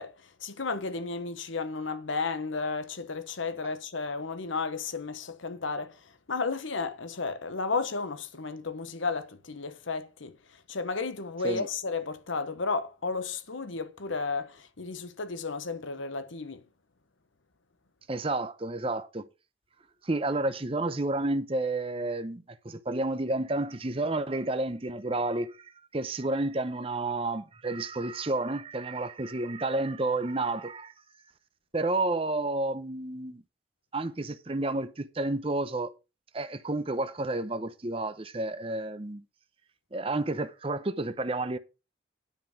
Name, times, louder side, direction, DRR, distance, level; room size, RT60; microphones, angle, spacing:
voice 1, 0.0-16.6, left 4 dB, 80° left, 1.0 m, -33 dB
voice 2, 18.1-19.3 20.0-30.9 31.7-33.4 33.9-35.9 36.3-39.2 39.9-41.6, right 2 dB, 30° right, 0.7 m, -30 dB
10.0 x 5.5 x 5.7 m
head